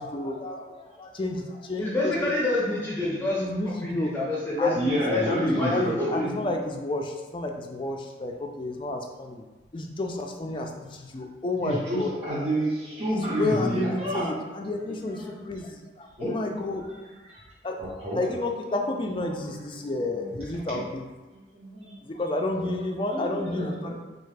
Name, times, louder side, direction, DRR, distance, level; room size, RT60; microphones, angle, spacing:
voice 1, 0.0-2.3 3.4-4.1 4.6-9.4 9.7-12.1 13.1-16.9 17.6-17.8 18.1-21.1 22.0-23.9, left 2 dB, 30° left, 2 dB, 0.4 m, -31 dB
voice 2, 1.8-3.4 3.8-4.7 5.1-6.4, left 2 dB, 15° left, -7 dB, 0.8 m, -27 dB
voice 3, 4.7-6.2 11.6-14.3 15.0-15.3 16.2-16.3 16.7-17.0 17.2-17.4 17.8-18.2 19.4-20.3 20.7-20.8 21.5-21.9 22.6-22.7 23.1-23.9, right 1 dB, 40° right, -10 dB, 0.9 m, -30 dB
4.4 x 2.4 x 3.3 m, 1.2 s
head